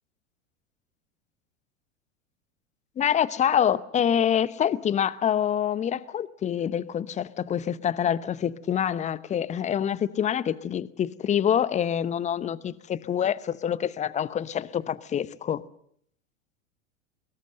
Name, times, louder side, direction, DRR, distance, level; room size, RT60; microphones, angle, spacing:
voice 1, 3.0-15.6, left 9 dB, 20° left, 0.9 m, -26 dB
23.5 x 22.0 x 7.7 m
figure-of-eight pair, 90°, 38 cm